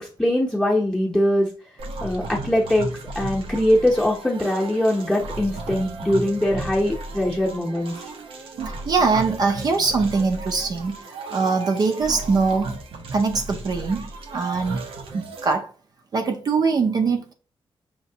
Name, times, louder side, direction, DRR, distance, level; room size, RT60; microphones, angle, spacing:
voice 1, 0.0-1.5 2.0-2.9 3.1-7.9, left 1 dB, 5° left, 0.8 m, -22 dB
sound 1, 1.8-15.5, right 3 dB, 90° right, 0.9 m, -34 dB
voice 2, 8.7-12.8 13.1-14.8 15.1-15.7 16.1-17.3, right 4 dB, 45° right, 0.6 m, -22 dB
5.8 x 3.1 x 2.7 m
wide cardioid pair, 150°, 9 cm